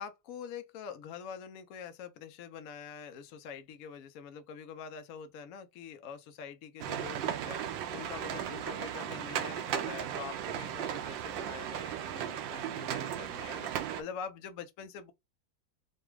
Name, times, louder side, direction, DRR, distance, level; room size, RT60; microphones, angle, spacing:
voice 1, 0.0-7.6 7.9-13.7 14.0-15.1, left 7 dB, 85° left, 0.7 m, -45 dB
sound 1, 6.8-14.0, right 10 dB, 75° right, 1.3 m, -36 dB
4.0 x 2.2 x 4.6 m
omnidirectional pair, 2.2 m